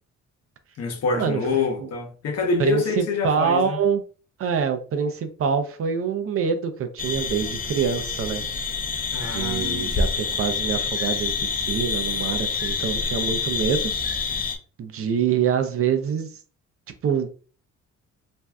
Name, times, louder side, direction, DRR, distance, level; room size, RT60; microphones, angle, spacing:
voice 1, 0.8-3.8 9.1-10.0, left 4 dB, 60° left, 0.8 m, -26 dB
voice 2, 2.6-4.0 4.4-8.4 9.3-13.9 14.8-16.3 17.0-17.3, right 7 dB, 50° right, 0.5 m, -25 dB
sound 1, 7.0-14.5, left 5 dB, 30° left, 0.5 m, -27 dB
2.6 x 2.2 x 3.3 m
cardioid pair, 115°, 29 cm